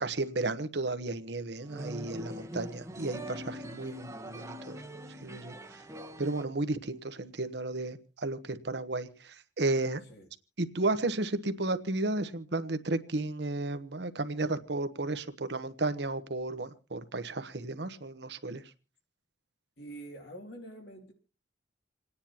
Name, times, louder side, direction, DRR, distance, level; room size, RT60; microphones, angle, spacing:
voice 1, 0.0-4.7 5.2-5.5 6.2-10.0 10.6-18.6, right 2 dB, 60° right, 1.1 m, -33 dB
sound 1, 1.6-6.4, equal, 15° right, 1.1 m, -43 dB
voice 2, 19.8-21.1, right 1 dB, 60° left, 2.6 m, -46 dB
28.5 x 9.8 x 2.9 m
head